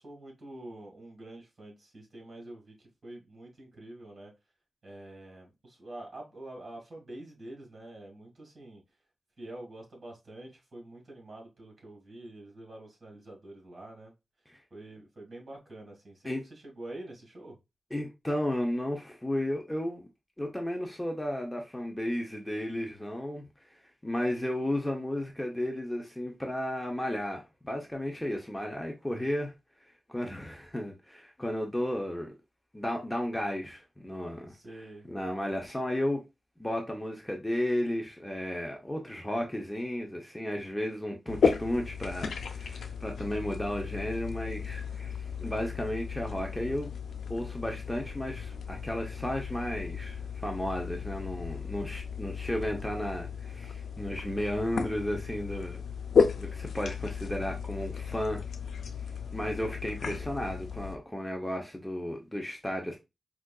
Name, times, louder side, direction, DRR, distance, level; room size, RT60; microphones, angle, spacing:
voice 1, 0.0-4.3 4.8-8.8 9.4-14.1 14.7-17.6 34.5-35.1, right 1 dB, 45° right, 1.8 m, -46 dB
voice 2, 17.9-20.1 20.4-23.4 24.0-29.5 30.1-32.3 32.7-34.5 35.1-36.2 36.6-46.9 47.3-55.8 56.4-58.4 59.3-63.0, left 1 dB, 10° left, 0.7 m, -33 dB
sound 1, 41.3-61.0, left 6 dB, 90° left, 0.3 m, -34 dB
4.5 x 2.4 x 2.3 m
wide cardioid pair, 80°, 0 cm